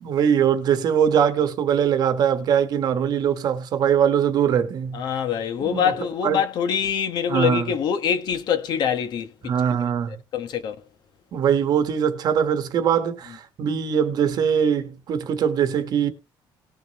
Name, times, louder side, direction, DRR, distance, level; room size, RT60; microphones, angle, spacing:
voice 1, 0.0-5.0 5.6-5.9 6.2-6.4 7.3-7.7 9.4-10.1 11.3-16.1, right 8 dB, 50° right, 1.3 m, -22 dB
voice 2, 4.9-9.5 10.3-10.7, left 8 dB, 55° left, 1.2 m, -24 dB
19.0 x 6.4 x 3.0 m
cardioid pair, 175°, 9 cm